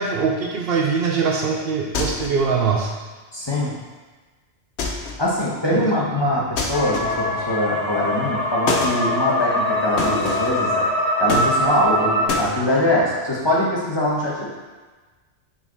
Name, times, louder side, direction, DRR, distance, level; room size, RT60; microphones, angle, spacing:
voice 1, 0.0-2.9, right 5 dB, 60° right, 0 dB, 0.8 m, -22 dB
sound 1, 1.9-2.5 4.8-5.3 6.6-7.4 8.7-9.0 10.0-10.6 11.3-11.9 12.3-12.5, left 3 dB, 75° left, 1.0 m, -26 dB
voice 2, 3.3-3.7 5.2-10.9 11.2-14.5, left 1 dB, 25° left, -6 dB, 1.1 m, -22 dB
sound 2, 6.7-12.3, left 1 dB, 55° left, 1.9 m, -23 dB
5.9 x 4.1 x 4.0 m, 1.3 s
omnidirectional pair, 1.2 m